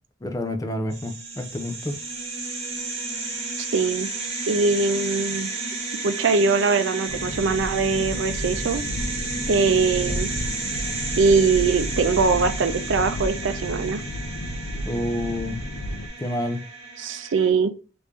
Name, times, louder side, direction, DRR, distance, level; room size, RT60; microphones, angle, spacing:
voice 1, 0.2-2.0 14.8-15.6 16.2-16.6, left 1 dB, 20° left, 0.5 m, -28 dB
sound 1, 0.9-17.5, right 3 dB, 35° right, 1.3 m, -32 dB
voice 2, 3.7-4.1 4.5-5.5 6.0-8.8 9.5-10.3 11.2-14.0 17.0-17.7, right 4 dB, 70° right, 0.5 m, -22 dB
sound 2, 7.1-16.1, left 1 dB, 75° left, 0.5 m, -32 dB
3.2 x 2.6 x 3.3 m
head